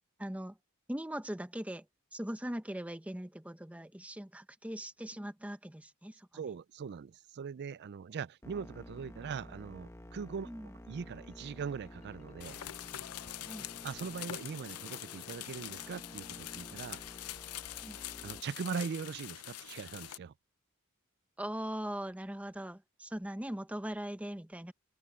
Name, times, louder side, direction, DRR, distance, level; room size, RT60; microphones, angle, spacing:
voice 1, 0.2-0.6 0.9-1.9 2.1-6.3 10.4-10.7 13.5-13.6 17.8-18.0 21.4-24.7, right 1 dB, 5° right, 0.8 m, -40 dB
voice 2, 6.3-12.6 13.8-17.0 18.2-20.3, right 6 dB, 50° right, 0.4 m, -41 dB
sound 1, 8.4-18.4, left 1 dB, 15° left, 1.2 m, -52 dB
Marimba xylophone, 11.2-14.0, left 3 dB, 35° left, 3.7 m, -66 dB
sound 2, 12.4-20.2, left 13 dB, 90° left, 0.6 m, -44 dB
open air
head